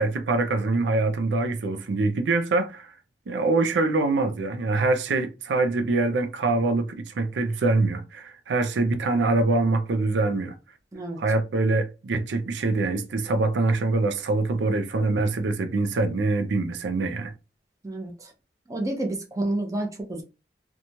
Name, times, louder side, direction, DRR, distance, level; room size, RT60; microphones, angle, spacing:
voice 1, 0.0-2.9 3.3-10.6 11.2-17.3, right 3 dB, 90° right, 0.4 m, -24 dB
voice 2, 17.8-18.3 18.7-20.2, right 1 dB, 20° right, 0.5 m, -29 dB
2.9 x 2.2 x 2.7 m
head